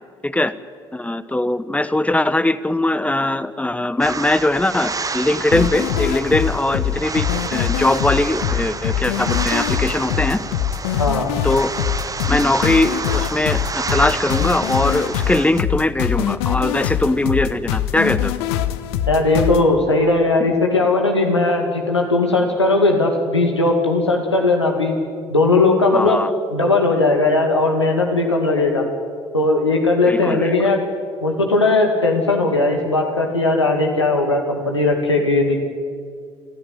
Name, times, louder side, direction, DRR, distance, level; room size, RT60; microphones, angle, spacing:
voice 1, 0.2-0.5 0.9-10.4 11.4-11.7 12.3-18.3 25.9-26.3 30.0-30.5, left 1 dB, 10° left, 14 dB, 1.2 m, -20 dB
sound 1, 4.0-15.6, right 4 dB, 25° right, 1.3 m, -29 dB
sound 2, 5.5-19.6, left 11 dB, 70° left, 1.0 m, -23 dB
voice 2, 11.0-11.3 19.1-25.0 25.3-26.2 26.5-28.8 29.3-30.8 31.2-35.6, left 2 dB, 90° left, 3 dB, 2.4 m, -18 dB
28.0 x 14.0 x 9.5 m, 2.1 s
figure-of-eight pair, 50°, 14 cm